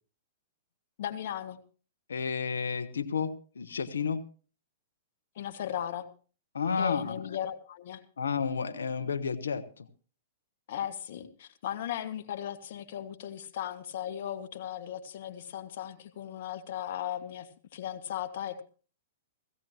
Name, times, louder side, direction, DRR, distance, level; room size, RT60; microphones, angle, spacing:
voice 1, 1.0-1.6 5.4-6.1 6.8-8.0 10.7-18.6, left 10 dB, 60° left, 10 dB, 1.9 m, -37 dB
voice 2, 2.1-4.2 6.5-7.2 8.2-9.6, left 6 dB, 85° left, 8 dB, 1.1 m, -31 dB
16.5 x 16.5 x 3.0 m, 0.37 s
hypercardioid pair, 120°, 0 cm